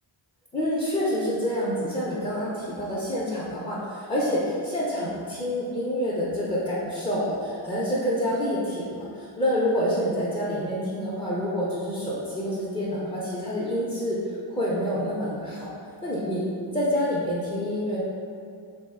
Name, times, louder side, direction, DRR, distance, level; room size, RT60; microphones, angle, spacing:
voice 1, 0.5-14.2 14.5-15.7 16.0-18.0, equal, 15° left, -8 dB, 0.4 m, -27 dB
3.0 x 2.1 x 3.4 m, 2.3 s
cardioid pair, 95°, 47 cm